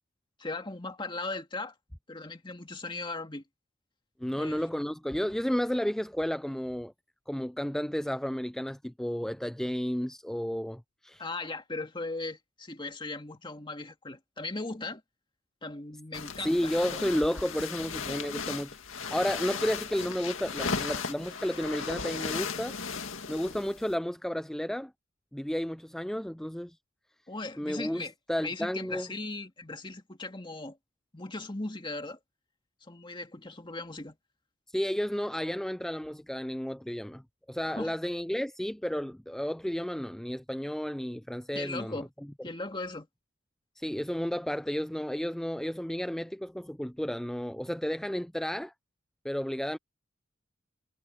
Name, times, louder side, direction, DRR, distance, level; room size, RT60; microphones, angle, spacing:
voice 1, 0.4-1.7 2.1-3.4 4.4-4.7 11.2-15.0 15.6-16.7 27.3-28.1 28.4-30.8 31.1-32.2 32.8-34.2 37.6-37.9 41.5-42.1 42.4-43.1, left 2 dB, 25° left, 2.1 m, -38 dB
voice 2, 4.2-6.9 7.3-11.3 16.4-22.8 23.3-24.9 25.3-26.8 27.6-29.1 34.7-37.2 37.5-42.0 43.8-48.7 49.2-49.8, equal, ahead, 0.3 m, -32 dB
sound 1, 16.1-23.9, left 5 dB, 75° left, 2.1 m, -36 dB
head